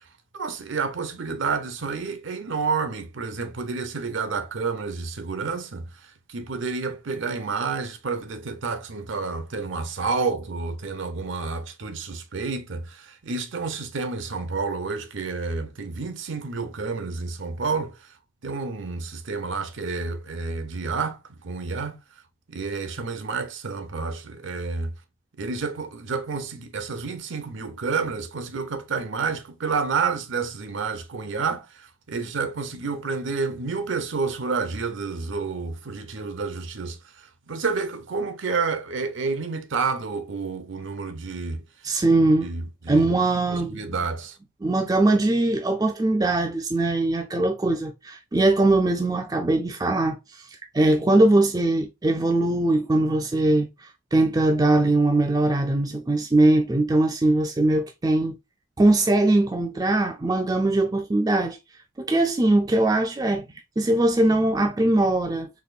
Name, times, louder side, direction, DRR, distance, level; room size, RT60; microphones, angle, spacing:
voice 1, 0.3-18.1 18.4-22.0 22.5-24.9 25.4-41.6 42.4-43.1 43.5-44.4, right 4 dB, 65° right, 0.7 m, -29 dB
voice 2, 41.8-42.5 42.9-43.8 44.6-50.5 50.7-53.7 54.1-58.4 58.8-61.6 62.0-63.4 63.8-65.5, right 2 dB, 20° right, 0.4 m, -21 dB
4.1 x 3.0 x 2.4 m
head